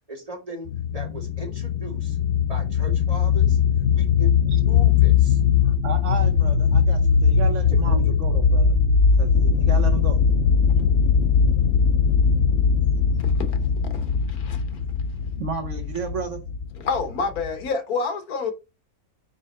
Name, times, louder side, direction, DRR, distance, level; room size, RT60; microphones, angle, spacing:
voice 1, 0.1-2.2 2.5-3.6 4.0-4.4 4.7-5.4 7.7-8.1, right 1 dB, 25° right, 2.6 m, -38 dB
sound 1, 0.7-17.7, left 6 dB, 55° left, 0.8 m, -20 dB
voice 2, 5.6-8.8 9.2-10.2 15.4-16.4, right 5 dB, 60° right, 1.2 m, -33 dB
voice 3, 13.2-13.6 13.9-14.6 16.8-18.5, left 4 dB, 80° left, 1.6 m, -28 dB
5.4 x 5.0 x 4.3 m
omnidirectional pair, 1.5 m